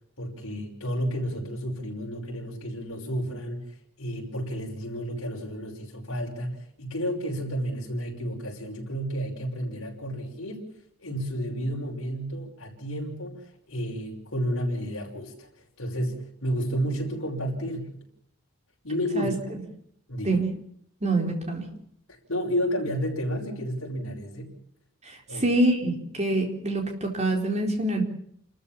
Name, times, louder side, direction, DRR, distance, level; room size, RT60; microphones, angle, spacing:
voice 1, 0.2-10.7 11.0-17.9 18.8-19.6 20.1-20.4 22.1-24.5 25.3-25.4, equal, 65° left, -3 dB, 5.8 m, -31 dB
voice 2, 21.0-21.7 25.1-28.0, right 2 dB, 30° right, 3 dB, 4.2 m, -25 dB
29.0 x 14.0 x 7.3 m, 0.69 s
head